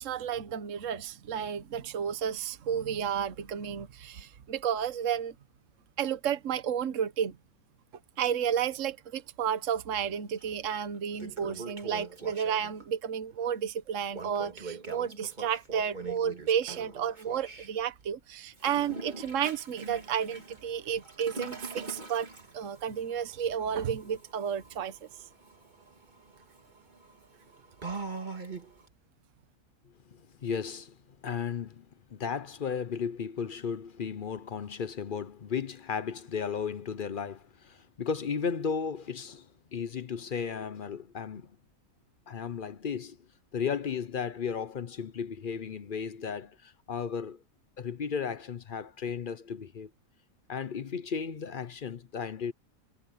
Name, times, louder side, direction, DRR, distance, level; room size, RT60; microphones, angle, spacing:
voice 1, 0.0-5.3 6.0-7.3 8.2-22.3 22.5-25.1, right 8 dB, 65° right, 1.4 m, -32 dB
Toilet flush, 10.4-10.5 10.9-12.9 14.1-17.7 18.5-28.9, right 3 dB, 35° right, 2.2 m, -43 dB
voice 2, 30.1-31.0 31.2-41.5 42.3-43.2 43.5-47.4 47.8-49.9 50.5-52.5, left 6 dB, 45° left, 0.7 m, -35 dB
omnidirectional pair, 1.5 m